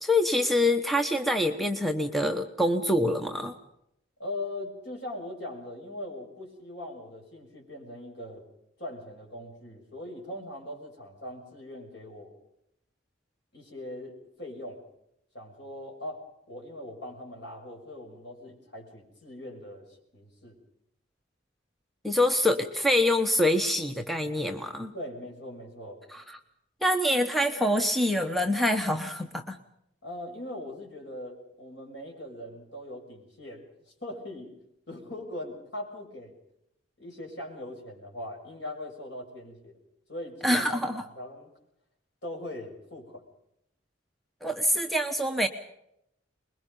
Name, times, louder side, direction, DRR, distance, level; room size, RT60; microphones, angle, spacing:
voice 1, 0.0-3.6 22.0-24.9 26.1-26.2 26.8-29.6 40.4-41.0 44.4-45.5, left 1 dB, ahead, 5 dB, 1.0 m, -25 dB
voice 2, 4.2-8.4 8.8-12.3 13.5-14.1 14.4-14.8 15.3-20.6 24.9-26.0 30.0-34.6 34.9-36.3 37.0-39.8 40.1-41.5 42.2-43.2, left 1 dB, 65° left, 1 dB, 6.1 m, -40 dB
25.0 x 21.5 x 5.4 m, 0.78 s
head